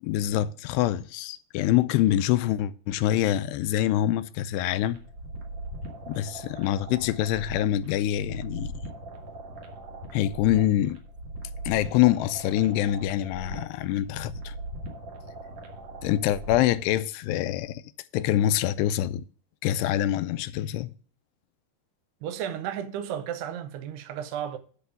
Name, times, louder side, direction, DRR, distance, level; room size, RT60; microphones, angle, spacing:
voice 1, 0.0-5.0 6.1-8.7 10.1-11.0 11.7-14.5 16.0-17.8 18.1-19.2 19.6-20.9, left 13 dB, 85° left, 2.6 m, -25 dB
sound 1, 4.8-16.8, right 1 dB, 55° right, 2.4 m, -40 dB
voice 2, 22.2-24.6, right 9 dB, 80° right, 2.8 m, -33 dB
10.0 x 4.3 x 7.0 m
omnidirectional pair, 4.8 m